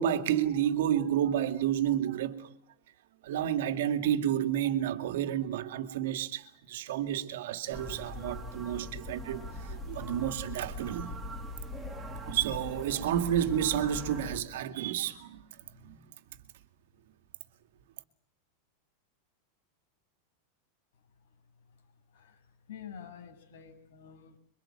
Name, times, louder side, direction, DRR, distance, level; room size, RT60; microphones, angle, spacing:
voice 1, 0.0-2.5 3.2-11.2 12.1-15.4 15.8-16.0, right 10 dB, 65° right, 2.3 m, -30 dB
sound 1, 7.7-14.4, equal, 5° right, 3.3 m, -41 dB
voice 2, 22.1-24.4, left 8 dB, 70° left, 7.6 m, -48 dB
26.5 x 24.0 x 8.8 m
supercardioid pair, 175°, 0 cm